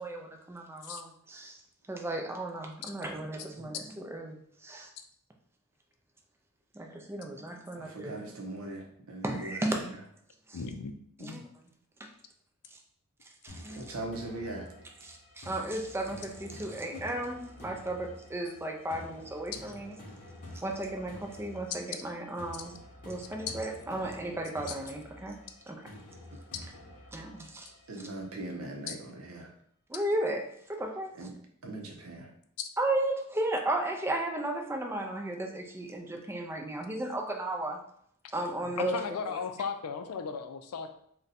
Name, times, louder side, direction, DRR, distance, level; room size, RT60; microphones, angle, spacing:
voice 1, 0.0-1.6 1.9-4.9 6.8-8.1 9.2-9.9 10.5-10.6 11.2-11.4 13.4-13.8 15.0-19.9 20.6-22.8 23.1-25.4 25.7-25.8 27.1-27.7 29.9-30.4 30.7-31.1 32.8-37.8 38.3-38.9 39.3-39.4, right 1 dB, 10° right, 2 dB, 0.3 m, -34 dB
voice 2, 7.7-10.0 13.8-14.7 27.9-29.5 31.2-31.3 31.6-32.3 38.6-38.8, right 2 dB, 70° right, 2 dB, 0.6 m, -40 dB
voice 3, 10.5-10.9 11.2-11.4 16.9-17.0 23.5-23.6 28.9-29.0 32.6-32.7 38.8-40.9, left 6 dB, 90° left, 7 dB, 0.4 m, -36 dB
sound 1, 13.5-28.4, left 1 dB, 40° left, 0.9 m, -49 dB
2.6 x 2.2 x 4.0 m, 0.67 s
head